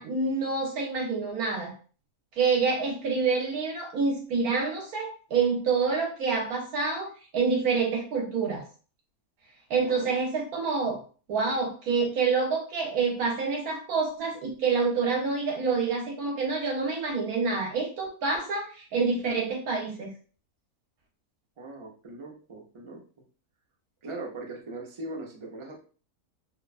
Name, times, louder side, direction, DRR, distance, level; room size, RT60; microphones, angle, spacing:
voice 1, 0.0-1.7 2.4-8.6 9.7-11.0 11.3-20.1, right 4 dB, 75° right, 0 dB, 1.3 m, -27 dB
voice 2, 9.8-10.2 21.6-23.0 24.0-25.8, right 2 dB, 50° right, -1 dB, 0.3 m, -40 dB
2.9 x 2.1 x 2.4 m, 0.38 s
omnidirectional pair, 1.6 m